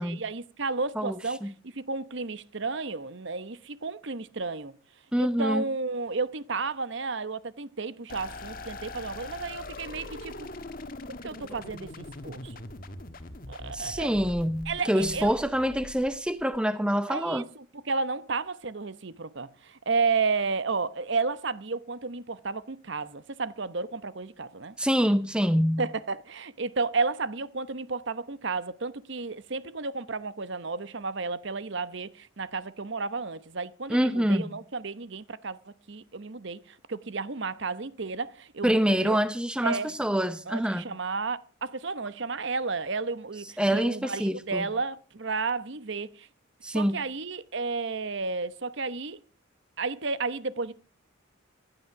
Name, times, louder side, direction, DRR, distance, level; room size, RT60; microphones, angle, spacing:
voice 1, 0.0-1.4 1.9-4.7 5.2-10.5 11.2-12.5 13.5-14.1 14.7-15.4 17.1-24.7 25.8-39.2 39.6-39.9 40.5-46.3 46.7-49.2 49.8-50.7, right 4 dB, 55° right, 0.9 m, -32 dB
voice 2, 5.1-5.6 13.7-17.4 24.8-25.8 33.9-34.6 38.6-40.8 43.6-44.7 46.6-47.0, equal, 5° right, 0.8 m, -26 dB
sound 1, 8.1-16.6, left 2 dB, 40° left, 1.4 m, -42 dB
16.0 x 12.0 x 5.8 m
head